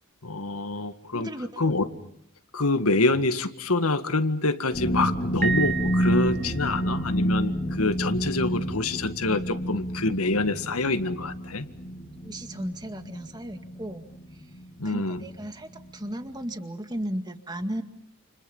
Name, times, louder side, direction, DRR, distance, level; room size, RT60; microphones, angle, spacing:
voice 1, 0.2-1.3 1.6-1.9 2.5-11.7 14.8-15.2, left 2 dB, 80° left, 9 dB, 1.9 m, -26 dB
voice 2, 1.1-1.5 12.2-14.1 14.8-17.8, right 1 dB, 20° right, 7 dB, 2.0 m, -35 dB
sound 1, 4.7-15.4 15.7-16.1 16.4-16.6, right 1 dB, 30° left, 2.6 m, -29 dB
Piano, 5.4-6.9, right 6 dB, 45° right, 4.1 m, -31 dB
30.0 x 29.5 x 5.6 m, 0.67 s
head